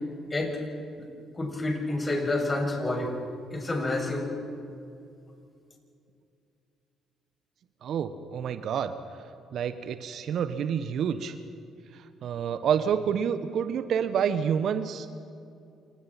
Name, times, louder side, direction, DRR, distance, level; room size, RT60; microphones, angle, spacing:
voice 1, 0.3-0.6 1.4-3.1 3.5-4.3, left 2 dB, 25° left, 1 dB, 7.3 m, -28 dB
voice 2, 7.8-8.9 9.5-11.3 11.9-15.2, right 8 dB, 60° right, 11 dB, 1.2 m, -28 dB
29.0 x 28.5 x 4.4 m, 2.5 s
hypercardioid pair, 45°, 0 cm